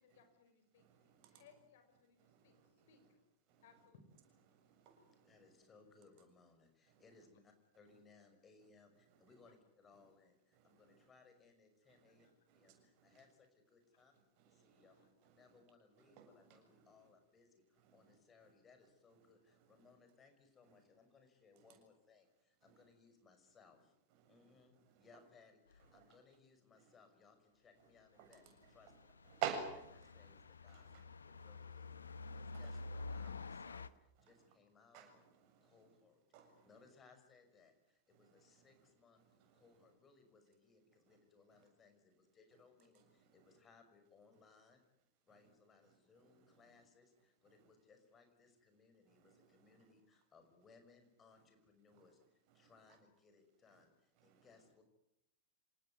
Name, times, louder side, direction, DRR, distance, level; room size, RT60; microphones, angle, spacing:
voice 1, 0.0-0.8 1.3-2.6 2.9-3.2 3.6-4.0 12.2-12.3 14.9-15.1, left 6 dB, 55° left, 8 dB, 5.2 m, -66 dB
voice 2, 0.7-1.5 2.2-3.1 3.5-3.9 4.5-5.5 6.9-7.1 9.1-9.3 10.0-10.1 10.5-11.1 11.9-13.3 14.4-15.6 16.0-17.1 17.7-18.5 19.2-19.9 20.6-20.8 21.6-21.8 22.6-22.9 24.1-25.2 25.8-26.2 26.7-27.0 27.8-30.4 30.7-31.0 31.3-31.5 32.2-33.3 34.2-34.5 34.9-36.0 36.3-36.8 38.1-38.9 39.2-39.9 41.1-41.2 41.5-41.7 42.9-43.6 45.3-45.5 45.8-46.8 47.4-47.7 49.1-49.9 51.9-52.1 52.5-52.8 53.7-53.9 54.2-54.7, right 8 dB, 45° right, 6 dB, 7.2 m, -53 dB
voice 3, 5.2-12.3 12.5-14.1 14.4-15.0 15.3-23.9 24.3-28.4 28.7-29.1 30.1-35.2 35.6-36.2 36.6-44.8 45.2-54.8, left 4 dB, 20° left, 7 dB, 5.9 m, -67 dB
sound 1, 25.7-25.9 28.4-33.9, left 3 dB, 75° left, 1.0 m, -49 dB
27.0 x 19.0 x 9.7 m, 0.81 s
figure-of-eight pair, 90°, 0 cm